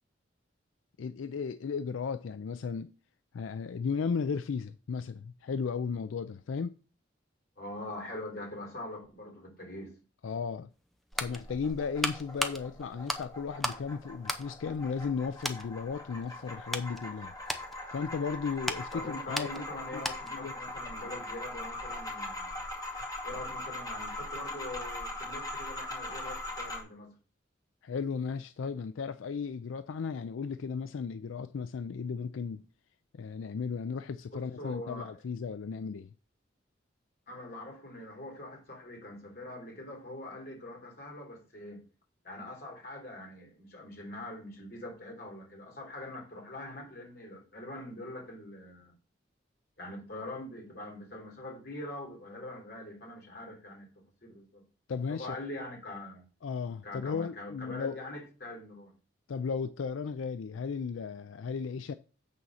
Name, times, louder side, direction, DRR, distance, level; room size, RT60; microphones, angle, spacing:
voice 1, 1.0-2.9 3.3-6.7 10.2-10.7 11.2-17.3 17.9-19.6 19.9-20.0 20.3-20.5 27.8-32.6 33.1-36.1 54.9-55.4 56.4-58.0 59.3-61.9, left 5 dB, 90° left, 0.4 m, -35 dB
voice 2, 7.6-10.0 18.9-22.6 23.2-27.1 34.3-35.2 37.3-41.8 42.2-48.9 49.8-53.9 54.3-54.6 55.2-56.2 56.8-58.9, left 1 dB, 50° left, 3.4 m, -43 dB
sound 1, 10.7-13.9 14.2-15.1 15.4-15.7 16.2-20.5 20.7-20.9, equal, ahead, 0.6 m, -37 dB
sound 2, 11.1-26.8, left 1 dB, 20° left, 2.3 m, -41 dB
8.4 x 4.2 x 6.4 m
head